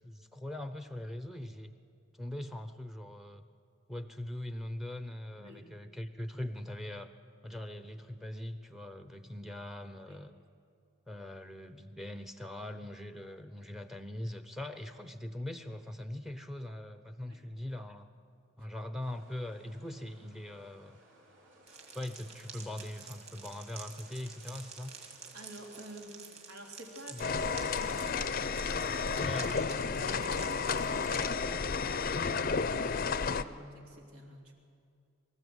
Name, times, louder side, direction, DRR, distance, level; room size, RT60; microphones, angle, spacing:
voice 1, 0.0-1.7 2.2-3.4 3.9-7.1 7.4-10.3 11.1-18.1 18.6-21.0 21.9-24.9 27.1-27.2 29.2-29.7, left 1 dB, ahead, 9 dB, 0.6 m, -41 dB
sound 1, 19.0-25.9, right 1 dB, 60° right, 3.8 m, -61 dB
sound 2, 21.7-31.3, right 5 dB, 30° right, 2.3 m, -49 dB
voice 2, 25.3-29.2 29.9-34.5, equal, 85° right, 1 dB, 3.1 m, -50 dB
sound 3, 27.2-33.4, left 5 dB, 40° left, 0.5 m, -32 dB
24.0 x 14.0 x 8.1 m, 2.4 s
head